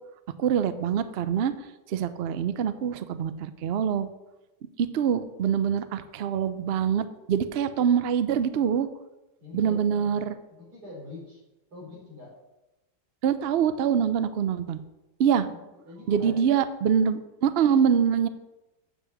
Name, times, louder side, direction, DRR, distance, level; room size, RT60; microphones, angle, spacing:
voice 1, 0.4-1.5 1.9-4.1 4.8-8.9 9.5-10.4 13.2-14.8 15.2-15.5 16.1-18.3, right 8 dB, 90° right, 12 dB, 0.5 m, -24 dB
voice 2, 9.4-10.1 10.5-11.4 11.7-12.3 15.8-16.4, left 3 dB, 60° right, -4 dB, 4.7 m, -43 dB
7.8 x 6.3 x 7.9 m, 0.99 s
omnidirectional pair, 1.9 m